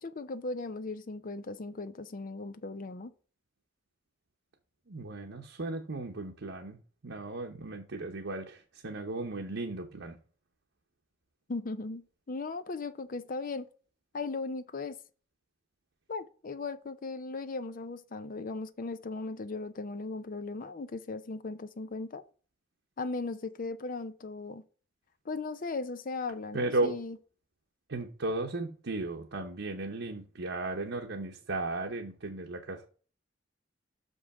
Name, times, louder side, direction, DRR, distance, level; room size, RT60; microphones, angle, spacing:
voice 1, 0.0-3.1 11.5-13.7 14.1-15.0 16.1-22.2 23.0-24.6 25.3-27.2, left 3 dB, 45° left, 0.5 m, -37 dB
voice 2, 4.9-10.2 26.5-27.0 27.9-32.9, right 2 dB, 70° right, 1.0 m, -35 dB
6.4 x 5.4 x 4.8 m
head